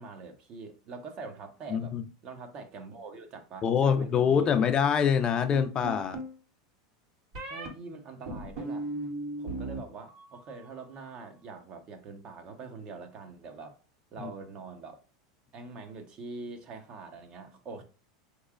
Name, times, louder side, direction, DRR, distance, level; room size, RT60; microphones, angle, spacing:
voice 1, 0.0-1.9 2.2-4.5 7.4-8.9 9.4-13.8 14.1-15.0 15.5-17.8, right 4 dB, 40° right, 0.8 m, -44 dB
voice 2, 1.7-2.0 3.6-6.2 14.2-14.3, left 7 dB, 35° left, 0.5 m, -25 dB
sound 1, 5.5-6.4 7.3-7.7 8.3-9.8 10.1-10.7, right 2 dB, 80° right, 1.8 m, -37 dB
3.6 x 3.1 x 2.4 m
hypercardioid pair, 110°, 3 cm